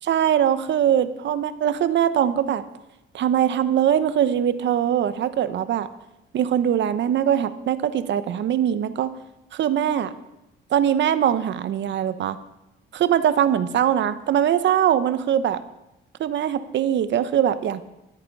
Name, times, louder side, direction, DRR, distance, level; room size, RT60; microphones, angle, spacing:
voice 1, 0.1-2.6 3.1-5.9 6.3-9.1 9.5-10.1 10.7-12.4 12.9-15.6 16.2-17.8, right 10 dB, 65° right, 13 dB, 0.9 m, -22 dB
12.5 x 10.0 x 5.4 m, 0.94 s
cardioid pair, 90°, 20 cm